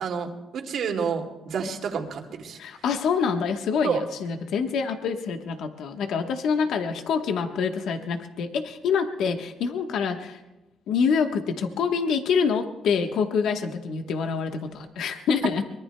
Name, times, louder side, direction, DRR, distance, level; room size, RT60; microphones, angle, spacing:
voice 1, 0.0-2.6 3.8-4.0, right 6 dB, 70° right, 2 dB, 2.3 m, -29 dB
voice 2, 2.6-10.4 10.9-15.6, left 6 dB, 80° left, 5 dB, 1.2 m, -26 dB
24.0 x 22.5 x 2.2 m, 1.0 s
cardioid pair, 90°, 0 cm